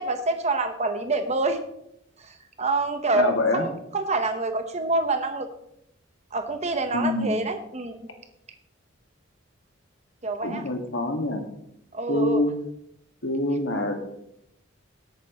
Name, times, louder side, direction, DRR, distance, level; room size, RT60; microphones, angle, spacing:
voice 1, 0.0-1.6 2.2-5.5 6.3-8.1 10.2-10.6 11.9-12.4, right 3 dB, 35° right, 7 dB, 1.1 m, -27 dB
voice 2, 3.1-3.7 6.9-7.4 10.4-11.4 12.1-12.5 13.2-13.9, left 1 dB, 65° left, 4 dB, 1.9 m, -25 dB
17.0 x 8.9 x 3.1 m, 0.77 s
head